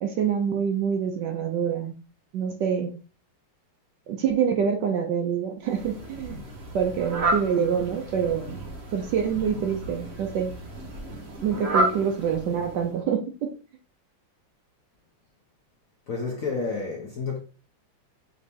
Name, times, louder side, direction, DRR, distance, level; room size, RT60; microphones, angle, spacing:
voice 1, 0.0-2.0 2.3-2.9 4.1-6.4 6.7-8.7 8.9-10.5 11.4-13.5, right 7 dB, 70° right, 1.1 m, -26 dB
Fowl, 5.6-13.0, right 2 dB, 40° right, 1.1 m, -32 dB
voice 2, 16.1-17.4, left 4 dB, 60° left, 0.9 m, -30 dB
5.1 x 2.8 x 3.4 m
omnidirectional pair, 2.3 m